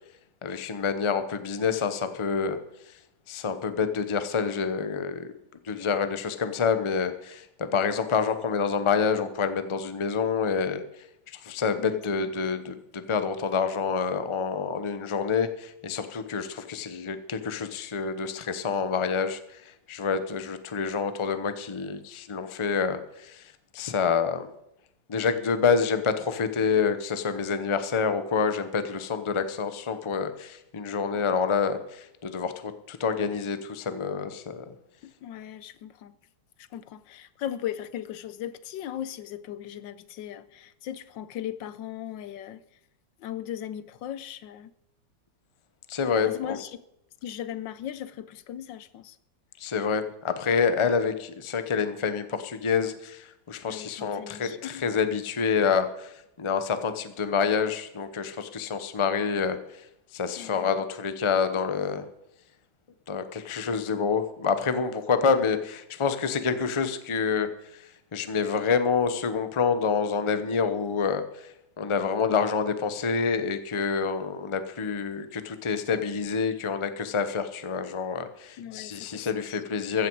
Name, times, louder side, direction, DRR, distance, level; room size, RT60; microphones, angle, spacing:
voice 1, 0.4-2.6 3.3-5.3 5.6-10.8 11.3-24.5 25.1-34.7 45.9-46.6 49.6-59.6 60.1-62.1 63.1-80.1, left 5 dB, 30° left, 0.6 m, -27 dB
voice 2, 11.8-12.3 35.0-36.2 36.6-42.6 43.2-44.7 46.3-46.8 47.2-49.2 53.7-54.8 60.4-60.8 78.6-79.6, left 10 dB, 80° left, 1.4 m, -38 dB
14.5 x 14.5 x 4.7 m
omnidirectional pair, 2.0 m